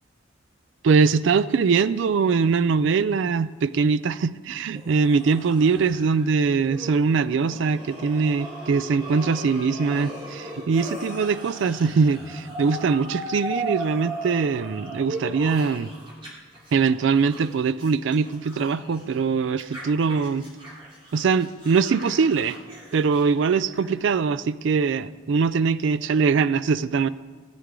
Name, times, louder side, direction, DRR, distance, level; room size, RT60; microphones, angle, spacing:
voice 1, 0.8-15.9 16.7-20.5 21.1-22.6 22.9-27.1, right 5 dB, 65° right, 15 dB, 0.4 m, -22 dB
sound 1, 4.7-16.3 16.5-19.2 19.6-24.1, right 1 dB, 25° right, 3.1 m, -37 dB
17.0 x 9.4 x 3.8 m, 1.3 s
head